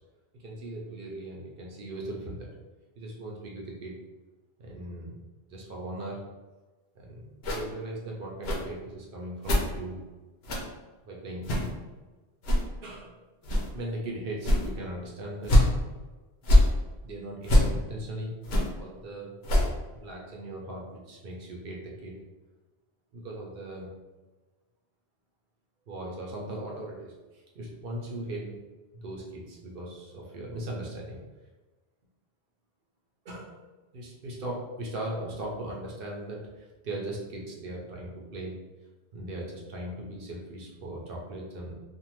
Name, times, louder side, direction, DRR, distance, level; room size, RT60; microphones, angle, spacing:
voice 1, 0.4-2.5 3.0-4.0 4.6-5.1 5.5-6.2 6.9-10.0 11.0-11.8 12.8-13.1 13.7-15.6 17.0-18.4 18.7-19.4 19.9-22.1 23.1-23.9 25.9-27.1 27.5-28.6 28.9-31.2 33.2-33.5 33.9-38.6 39.1-41.7, right 1 dB, 65° right, -2 dB, 0.8 m, -38 dB
sound 1, 7.4-7.6 8.4-8.6 9.4-9.6 10.4-10.6 11.4-11.7 12.4-12.6 13.4-13.7 14.4-14.7 15.4-15.7 16.4-16.7 17.4-17.7 18.4-18.7 19.4-19.7, left 1 dB, 80° left, 0.9 m, -22 dB
2.6 x 2.4 x 3.0 m, 1.2 s
omnidirectional pair, 1.1 m